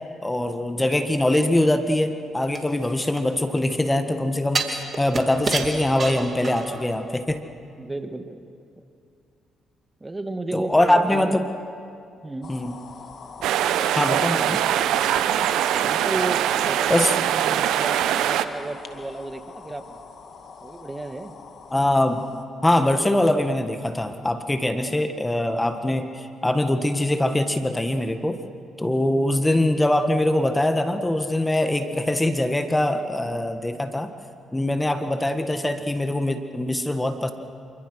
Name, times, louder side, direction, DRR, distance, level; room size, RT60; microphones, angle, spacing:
voice 1, 0.2-4.6 5.0-7.4 10.5-11.4 12.5-12.7 13.9-14.6 16.9-17.1 21.7-22.2 22.6-28.4 28.8-34.1 34.5-37.3, left 1 dB, 15° left, 8 dB, 1.6 m, -23 dB
sound 1, 2.5-3.7 4.5-6.9 7.3-7.4, right 4 dB, 45° right, 3.0 m, -29 dB
voice 2, 7.8-8.4 10.0-11.4 12.2-12.5 14.3-14.7 15.8-20.0 20.6-21.3 31.8-32.0, right 2 dB, 20° right, 8 dB, 1.8 m, -33 dB
sound 2, 12.4-22.4, left 5 dB, 60° left, 2.1 m, -43 dB
sound 3, 13.4-18.4, right 10 dB, 75° right, 0.9 m, -22 dB
27.0 x 24.5 x 6.4 m, 2.5 s
hypercardioid pair, 50°, 0 cm